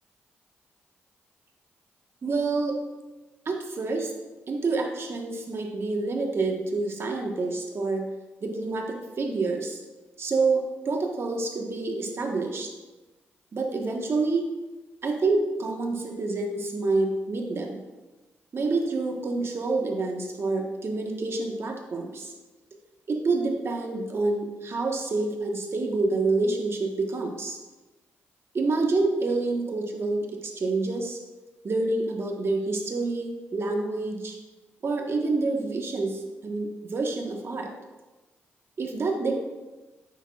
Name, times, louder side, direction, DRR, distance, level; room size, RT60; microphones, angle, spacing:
voice 1, 2.2-2.8 3.4-4.1 4.5-8.1 8.4-9.8 10.2-12.7 13.5-14.5 15.0-17.8 18.5-22.3 23.1-27.6 28.5-31.2 31.6-34.4 34.8-37.7 38.8-39.3, right 3 dB, 55° right, 2 dB, 1.3 m, -27 dB
8.8 x 6.3 x 2.4 m, 1.1 s
supercardioid pair, 50°, 5 cm